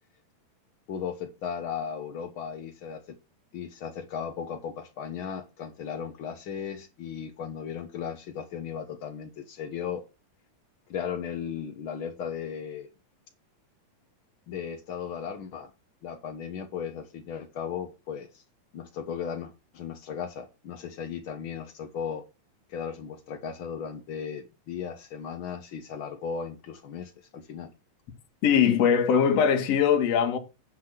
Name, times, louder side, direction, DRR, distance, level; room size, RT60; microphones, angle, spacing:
voice 1, 0.9-3.2 3.5-10.0 10.9-12.9 14.5-15.7 16.0-18.4 18.7-22.2 22.7-27.7, left 7 dB, 80° left, 1.1 m, -36 dB
voice 2, 28.4-30.4, left 7 dB, 55° left, 2.4 m, -21 dB
9.6 x 6.1 x 5.9 m
omnidirectional pair, 3.9 m